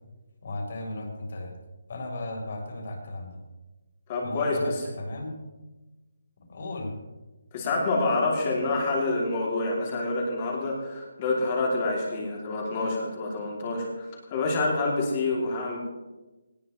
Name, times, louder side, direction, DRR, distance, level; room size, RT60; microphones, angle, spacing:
voice 1, 0.4-1.5 1.9-3.4 4.2-5.3 6.5-7.0, left 1 dB, 35° left, 1 dB, 3.9 m, -35 dB
voice 2, 4.1-4.8 7.5-15.8, left 2 dB, 15° left, -2 dB, 2.7 m, -27 dB
20.5 x 18.5 x 3.2 m, 1.1 s
hypercardioid pair, 180°, 0 cm